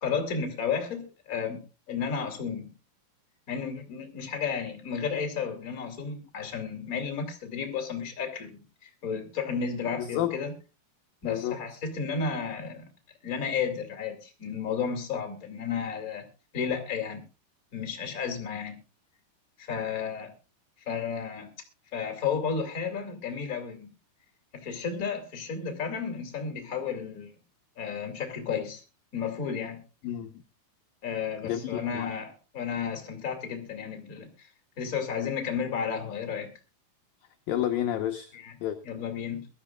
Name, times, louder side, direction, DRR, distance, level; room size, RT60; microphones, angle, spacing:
voice 1, 0.0-2.7 3.5-10.5 11.2-12.9 13.2-16.3 16.5-17.2 17.7-18.8 19.6-20.3 20.9-21.5 21.9-23.9 24.5-27.3 27.8-28.8 29.1-29.8 31.0-34.5 34.8-36.5 38.3-38.5 38.8-39.5, left 6 dB, 25° left, 2.4 m, -32 dB
voice 2, 10.0-10.4 11.2-11.6 30.0-30.3 31.4-32.1 37.5-38.3 38.6-38.8, left 11 dB, 75° left, 2.2 m, -30 dB
22.5 x 13.0 x 2.4 m
omnidirectional pair, 5.3 m